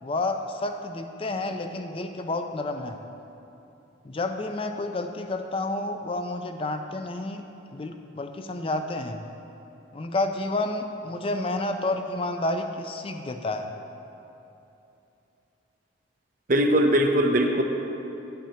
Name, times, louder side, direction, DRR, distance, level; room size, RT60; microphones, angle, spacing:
voice 1, 0.0-3.0 4.0-7.5 7.7-9.3 9.9-13.7, left 2 dB, 25° left, 6 dB, 0.4 m, -30 dB
voice 2, 16.5-17.6, right 1 dB, 40° right, 4 dB, 0.6 m, -20 dB
10.5 x 10.0 x 2.9 m, 2.9 s
head